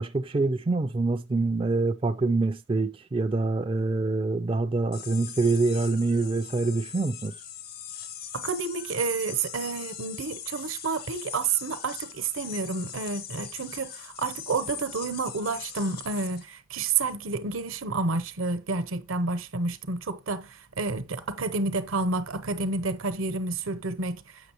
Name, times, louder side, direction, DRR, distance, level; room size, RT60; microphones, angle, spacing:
voice 1, 0.0-7.3, right 3 dB, 25° right, 0.3 m, -25 dB
sound 1, 4.9-16.4, left 9 dB, 50° left, 0.7 m, -41 dB
voice 2, 8.3-24.2, right 3 dB, 75° right, 0.9 m, -30 dB
7.9 x 6.2 x 3.0 m
head